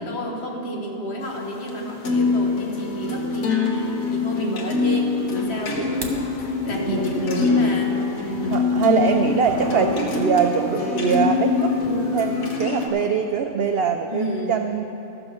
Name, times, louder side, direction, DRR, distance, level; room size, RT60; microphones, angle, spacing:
voice 1, 0.0-8.0 8.3-8.8 14.1-14.5, left 1 dB, 50° left, 0 dB, 1.5 m, -30 dB
sound 1, 1.2-12.9, left 4 dB, 70° left, 1.5 m, -24 dB
sound 2, 5.0-10.8, right 1 dB, 35° right, 3.0 m, -39 dB
sound 3, 5.8-6.3, right 2 dB, 20° right, 0.8 m, -35 dB
voice 2, 6.8-7.8 8.3-14.8, right 6 dB, 70° right, 6 dB, 0.5 m, -23 dB
14.5 x 6.1 x 6.4 m, 2.9 s
omnidirectional pair, 1.5 m